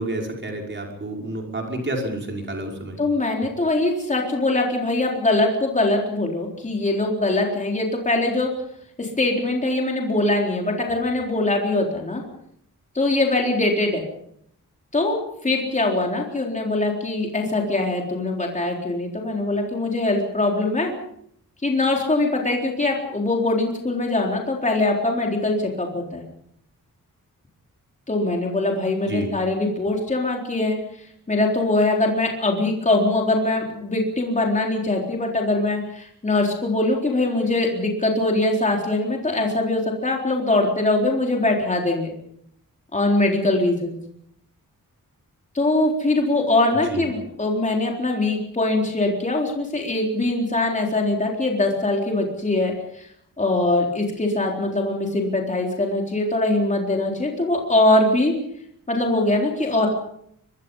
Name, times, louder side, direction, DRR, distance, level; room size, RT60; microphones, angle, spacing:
voice 1, 0.0-3.0 29.1-29.3 46.9-47.0, right 1 dB, 35° right, 1 dB, 5.5 m, -29 dB
voice 2, 3.0-8.5 9.0-12.2 12.9-14.0 14.9-20.9 21.6-26.2 28.1-42.1 42.9-44.0 45.5-53.1 53.4-58.3 58.9-59.9, left 2 dB, 20° left, 0 dB, 4.0 m, -22 dB
24.0 x 23.5 x 5.6 m, 0.70 s
wide cardioid pair, 175°, 34 cm